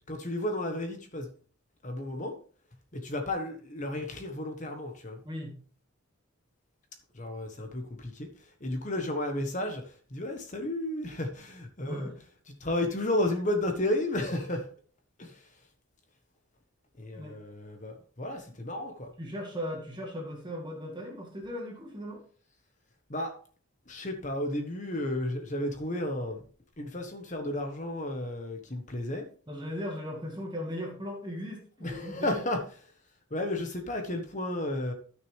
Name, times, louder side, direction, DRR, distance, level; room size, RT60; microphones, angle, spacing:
voice 1, 0.1-1.3 1.8-2.3 2.9-5.2 7.1-8.3 8.6-9.8 10.1-12.1 12.6-14.7 15.2-15.4 17.0-19.1 23.1-23.3 23.9-26.4 26.8-29.2 31.8-32.6 33.3-34.9, left 1 dB, 35° left, 5 dB, 1.3 m, -32 dB
voice 2, 5.2-5.6 11.8-12.2 17.1-17.4 18.5-18.6 19.2-22.2 29.5-32.4, equal, 20° right, 0 dB, 1.8 m, -38 dB
13.5 x 6.3 x 3.4 m, 0.43 s
head